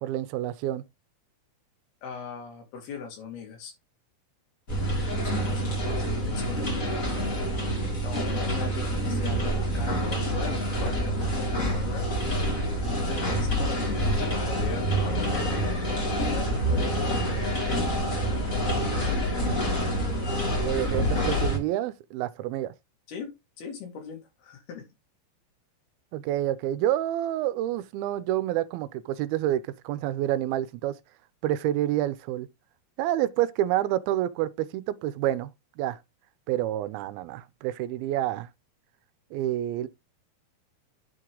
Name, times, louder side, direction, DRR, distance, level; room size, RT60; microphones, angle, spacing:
voice 1, 0.0-0.8 20.5-22.7 26.1-31.0 31.4-32.5 33.0-35.5 35.8-36.0 36.5-38.5 39.3-39.9, right 13 dB, 85° right, 2.5 m, -28 dB
voice 2, 2.0-3.7 5.2-7.0 8.0-12.2 12.8-15.5 16.0-17.3 17.9-18.6 19.0-19.8 23.1-24.8, left 6 dB, 90° left, 4.3 m, -40 dB
sound 1, 4.7-21.6, equal, 25° left, 2.1 m, -27 dB
9.2 x 4.7 x 3.7 m
omnidirectional pair, 4.3 m